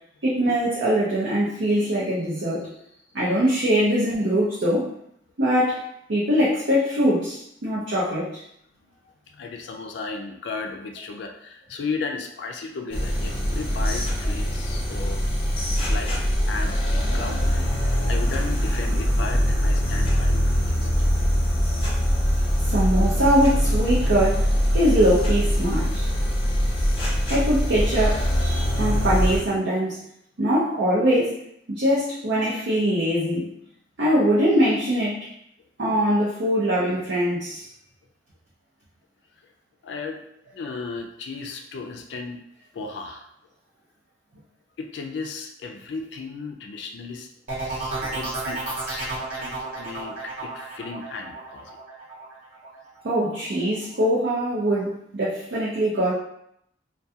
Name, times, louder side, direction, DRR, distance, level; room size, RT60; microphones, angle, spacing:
voice 1, 0.2-2.7 3.1-4.9 5.4-8.4 22.6-26.1 27.3-30.0 30.4-31.4 31.7-33.5 34.0-35.3 35.8-37.7 53.0-56.1, equal, 70° right, -8 dB, 0.6 m, -22 dB
voice 2, 9.3-15.2 15.9-20.8 39.8-40.2 40.5-42.4 42.7-43.3 44.8-47.3 47.6-51.7, left 4 dB, 65° left, 4 dB, 0.3 m, -35 dB
sound 1, 12.9-29.4, equal, 30° left, 0.7 m, -23 dB
sound 2, 47.5-53.1 53.5-54.0, right 3 dB, 45° right, 0.9 m, -33 dB
2.3 x 2.2 x 2.7 m, 0.72 s
head